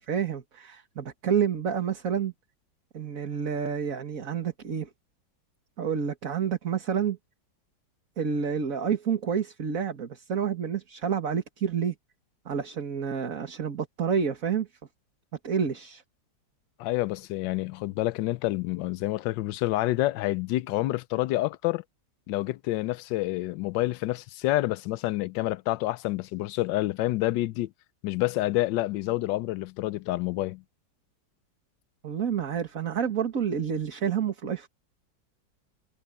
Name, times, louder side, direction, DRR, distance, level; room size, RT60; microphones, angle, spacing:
voice 1, 0.0-2.3 2.9-4.9 5.8-7.2 8.2-11.9 12.5-14.7 15.4-16.0 32.0-34.7, right 7 dB, 50° right, 2.0 m, -29 dB
voice 2, 16.8-21.8 22.3-27.7 28.0-30.6, left 17 dB, 85° left, 1.3 m, -28 dB
omnidirectional pair, 2.0 m